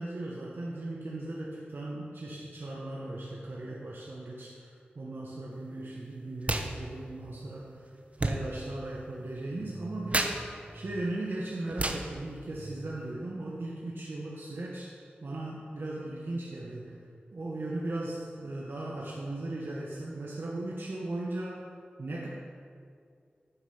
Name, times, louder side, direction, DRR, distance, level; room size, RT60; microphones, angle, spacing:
voice 1, 0.0-7.9 8.2-14.9 15.2-16.9 17.3-21.7 22.0-22.3, right 2 dB, 65° right, -4 dB, 1.1 m, -37 dB
sound 1, 6.4-6.7 7.0-13.1, right 2 dB, 35° right, 0.8 m, -35 dB
9.6 x 5.3 x 5.6 m, 2.3 s
cardioid pair, 40°, 4 cm